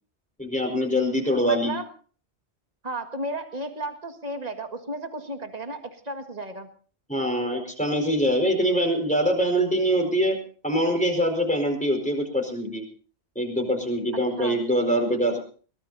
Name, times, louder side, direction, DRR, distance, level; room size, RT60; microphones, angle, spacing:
voice 1, 0.4-1.7 7.1-10.4 10.6-12.8 13.3-15.4, equal, 5° left, 2 dB, 4.8 m, -24 dB
voice 2, 1.4-1.9 2.8-6.7 14.4-14.6, right 1 dB, 35° right, 6 dB, 1.9 m, -33 dB
22.5 x 18.5 x 2.7 m, 0.41 s
omnidirectional pair, 1.2 m